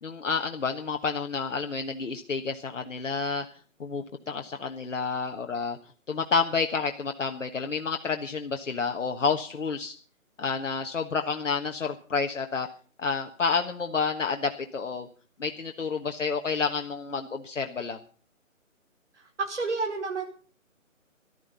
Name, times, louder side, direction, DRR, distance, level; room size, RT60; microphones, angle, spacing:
voice 1, 0.0-3.4 3.8-5.8 6.1-9.9 10.4-12.7 13.0-15.1 15.4-18.0, left 5 dB, 60° left, 5 dB, 1.4 m, -29 dB
voice 2, 19.1-20.2, right 4 dB, 55° right, 2 dB, 4.5 m, -30 dB
14.5 x 12.5 x 5.5 m, 0.43 s
figure-of-eight pair, 150°, 41 cm